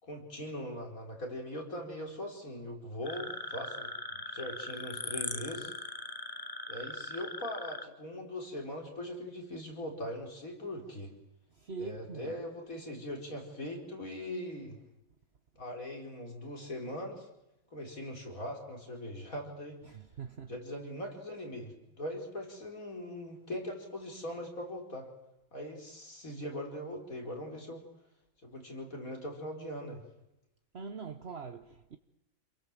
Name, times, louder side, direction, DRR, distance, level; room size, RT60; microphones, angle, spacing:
voice 1, 0.0-5.7 6.7-11.1 11.8-14.8 15.6-17.3 17.7-19.8 20.5-25.1 25.5-27.8 28.4-30.0, left 1 dB, 75° left, 5.3 m, -41 dB
sound 1, 3.0-7.9, left 2 dB, 25° left, 1.3 m, -40 dB
voice 2, 11.5-12.3 19.9-20.5 30.7-32.0, right 5 dB, 50° right, 1.3 m, -43 dB
28.5 x 22.0 x 7.6 m
omnidirectional pair, 1.5 m